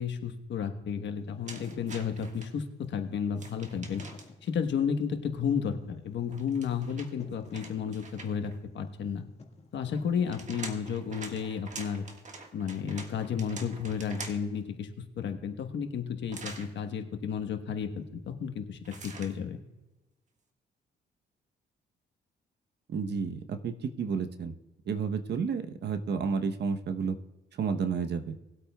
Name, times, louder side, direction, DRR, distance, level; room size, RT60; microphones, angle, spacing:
voice 1, 0.0-4.0 4.4-9.2 9.7-12.0 12.5-14.9 15.2-19.6, left 7 dB, 65° left, 7 dB, 1.2 m, -32 dB
Wind / Fire, 1.2-10.7, left 4 dB, 35° left, 1.7 m, -54 dB
sound 1, 1.5-2.5 3.3-4.5 6.3-8.6 10.0-14.6 16.3-16.7 18.8-19.4, right 3 dB, 35° right, 1.6 m, -45 dB
voice 2, 22.9-24.5 24.9-27.2 27.6-28.4, right 5 dB, 60° right, 8 dB, 0.9 m, -31 dB
19.5 x 8.3 x 2.3 m, 1.1 s
cardioid pair, 90°, 20 cm